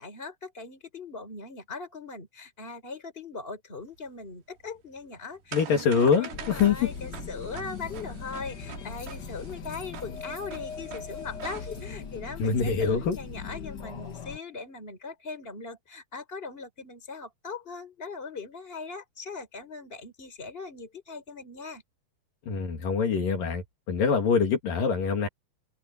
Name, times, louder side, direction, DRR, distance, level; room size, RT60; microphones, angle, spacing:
voice 1, 0.0-21.8, left 4 dB, 15° left, 4.2 m, -40 dB
sound 1, 3.9-12.0, right 8 dB, 70° right, 4.4 m, -45 dB
voice 2, 5.5-6.8 12.4-13.2 22.5-25.3, left 5 dB, 65° left, 4.1 m, -24 dB
sound 2, 6.3-14.4, left 6 dB, 80° left, 0.9 m, -40 dB
open air
omnidirectional pair, 4.4 m